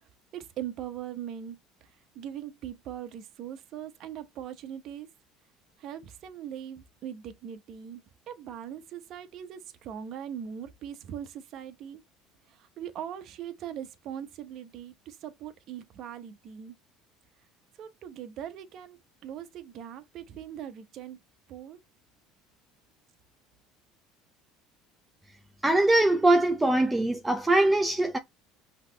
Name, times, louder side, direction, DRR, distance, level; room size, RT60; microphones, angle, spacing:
voice 1, 0.3-1.6 2.1-5.1 5.8-12.0 12.5-16.8 17.8-19.0 19.2-21.2 21.5-21.8, right 9 dB, 55° right, 0.9 m, -40 dB
voice 2, 25.6-28.2, right 2 dB, 10° right, 0.6 m, -22 dB
5.7 x 3.0 x 3.1 m
supercardioid pair, 105°, 0 cm